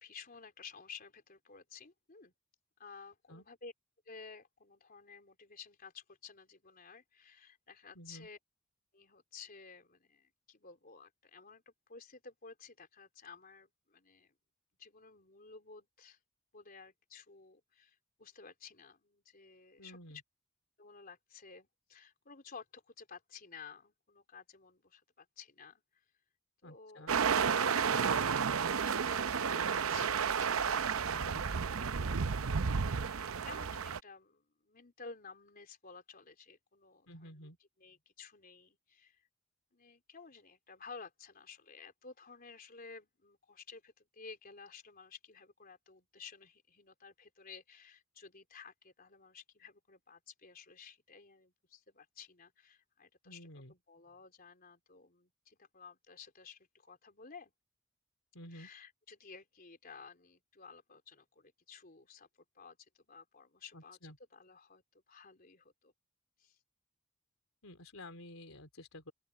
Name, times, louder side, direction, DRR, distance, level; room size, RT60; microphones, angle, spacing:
voice 1, 0.0-2.3 2.8-3.7 4.1-8.4 8.9-14.3 14.8-16.2 16.5-20.0 20.8-26.0 26.6-27.1 27.6-31.3 31.7-37.5 37.8-39.3 39.7-57.5 58.5-62.3 62.5-65.9 66.4-66.6, left 5 dB, 45° left, 3.7 m, -54 dB
voice 2, 8.0-8.3 19.8-20.2 26.6-27.2 31.0-31.5 37.1-37.6 53.3-53.7 58.3-58.7 63.7-64.1 67.6-69.1, left 1 dB, 80° left, 3.6 m, -51 dB
sound 1, 27.1-34.0, right 6 dB, 85° right, 0.7 m, -32 dB
open air
head